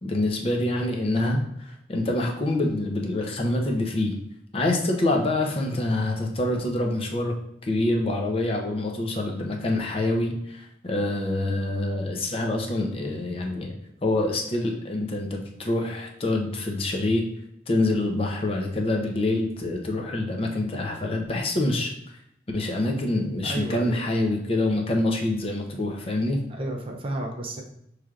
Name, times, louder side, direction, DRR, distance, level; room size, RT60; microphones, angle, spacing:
voice 1, 0.0-4.1 4.5-7.3 7.7-13.7 14.0-17.3 17.7-21.9 22.5-26.4, left 2 dB, 30° left, 1 dB, 0.6 m, -26 dB
voice 2, 23.4-24.0 26.5-27.6, right 1 dB, 30° right, 1 dB, 0.5 m, -33 dB
6.0 x 3.2 x 2.4 m, 0.77 s
head